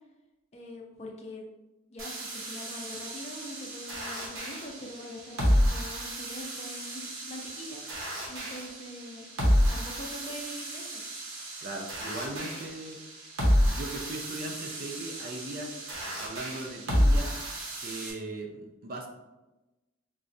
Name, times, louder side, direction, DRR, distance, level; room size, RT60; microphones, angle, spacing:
voice 1, 0.5-1.4 1.9-9.3 9.7-11.0, left 1 dB, 30° left, 0 dB, 0.5 m, -43 dB
sound 1, 2.0-18.1, equal, 85° right, 0.9 m, -30 dB
voice 2, 11.6-13.0 13.7-15.7 16.0-17.3 17.8-19.1, right 2 dB, 45° right, 2 dB, 0.4 m, -39 dB
4.6 x 2.1 x 2.6 m, 1.0 s
head